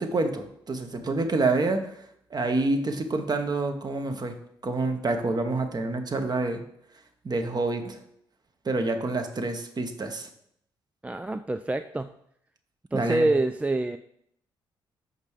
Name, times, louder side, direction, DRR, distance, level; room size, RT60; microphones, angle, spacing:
voice 1, 0.0-1.9 2.3-4.3 4.6-6.6 7.2-8.0 8.6-10.3 12.9-13.3, right 3 dB, 35° right, 6 dB, 1.1 m, -27 dB
voice 2, 11.0-12.1 12.9-14.0, right 2 dB, 10° right, 10 dB, 0.3 m, -26 dB
5.3 x 5.2 x 4.8 m, 0.72 s
hypercardioid pair, 45°, 11 cm